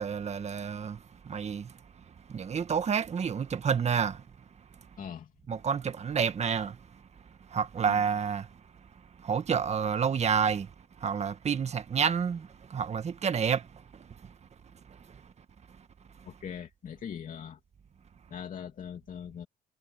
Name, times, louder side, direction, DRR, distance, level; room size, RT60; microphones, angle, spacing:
voice 1, 0.0-1.8 2.3-4.2 5.5-7.0 7.5-8.5 9.2-10.7 11.0-14.3 14.9-15.3, right 6 dB, 40° right, 1.8 m, -30 dB
voice 2, 5.0-5.3 7.9-8.0 16.2-17.6 18.3-19.5, left 8 dB, 50° left, 2.7 m, -41 dB
cardioid pair, 105°, 18 cm